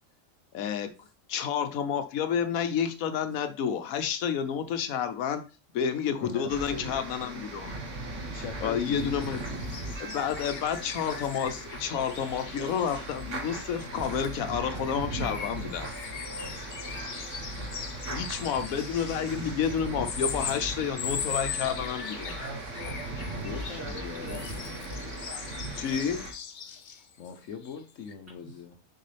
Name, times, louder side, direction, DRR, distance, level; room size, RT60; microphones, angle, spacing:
voice 1, 0.5-0.9 1.3-5.4 5.7-7.7 8.6-9.4 10.0-15.9 18.1-22.4 25.8-26.2, left 7 dB, 90° left, 9 dB, 1.2 m, -30 dB
voice 2, 6.0-7.2 8.3-9.3 23.4-24.8 27.2-28.8, left 6 dB, 70° left, 5 dB, 1.1 m, -41 dB
sound 1, 6.5-26.3, right 2 dB, 65° right, 1.6 m, -38 dB
sound 2, 9.0-14.4 14.8-27.4 27.6-27.8 28.1-28.2, left 7 dB, 55° left, 0.5 m, -40 dB
voice 3, 22.4-23.0 23.6-25.5 25.8-26.0 28.4-28.5, equal, 10° right, -6 dB, 3.3 m, -44 dB
6.6 x 4.6 x 3.3 m, 0.31 s
omnidirectional pair, 1.4 m